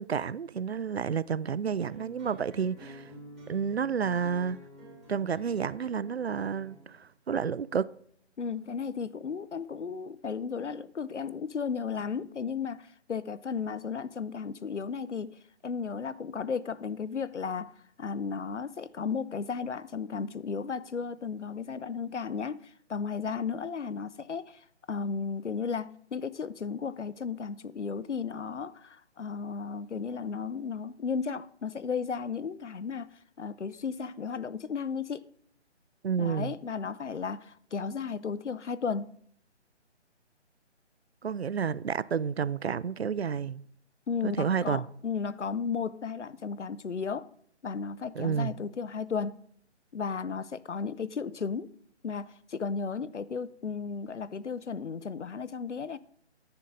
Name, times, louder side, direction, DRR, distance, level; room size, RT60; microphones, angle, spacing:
voice 1, 0.0-3.1 3.5-4.6 5.1-7.9 36.0-36.5 41.2-43.6 44.2-44.9 48.2-48.6, right 7 dB, 60° right, 0.5 m, -30 dB
sound 1, 1.8-6.8, right 2 dB, ahead, 4.1 m, -49 dB
voice 2, 8.4-15.4 15.6-17.7 18.0-35.2 36.2-39.1 44.1-47.3 47.6-49.4 49.9-51.7 52.0-56.0, left 5 dB, 75° left, 0.7 m, -34 dB
10.5 x 9.8 x 3.8 m
figure-of-eight pair, 150°, 36 cm